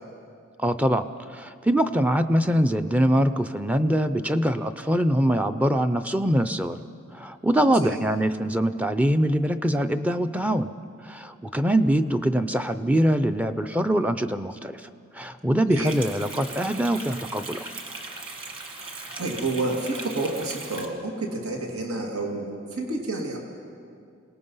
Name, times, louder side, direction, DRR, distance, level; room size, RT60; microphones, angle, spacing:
voice 1, 0.6-1.0 1.3-6.8 7.1-10.7 11.0-14.9 15.1-17.7, right 1 dB, 5° right, 9 dB, 0.5 m, -23 dB
voice 2, 7.7-8.0 15.7-15.9 18.9-23.4, right 2 dB, 85° right, 0 dB, 2.3 m, -30 dB
sound 1, 15.8-20.9, right 3 dB, 25° right, 1.6 m, -38 dB
26.5 x 18.5 x 5.6 m, 2.4 s
head